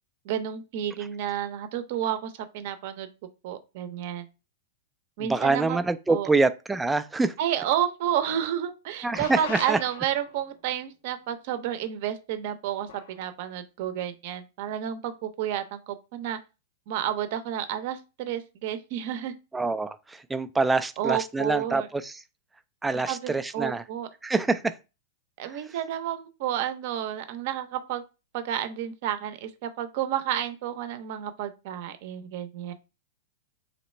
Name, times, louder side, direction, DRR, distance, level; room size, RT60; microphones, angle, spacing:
voice 1, 0.2-3.1 3.4-4.3 5.2-5.8 6.1-6.3 7.4-16.4 16.9-19.3 21.0-21.9 23.1-24.1 25.4-28.0 28.3-32.7, right 10 dB, 55° right, 0.6 m, -31 dB
voice 2, 5.2-7.3 9.0-9.8 19.5-22.2 22.8-23.8 24.2-24.8 25.5-25.6, right 3 dB, 10° right, 0.3 m, -26 dB
sound 1, 9.1-10.5 12.9-13.2, left 7 dB, 70° left, 0.6 m, -40 dB
3.1 x 2.9 x 4.3 m
hypercardioid pair, 135°, 0 cm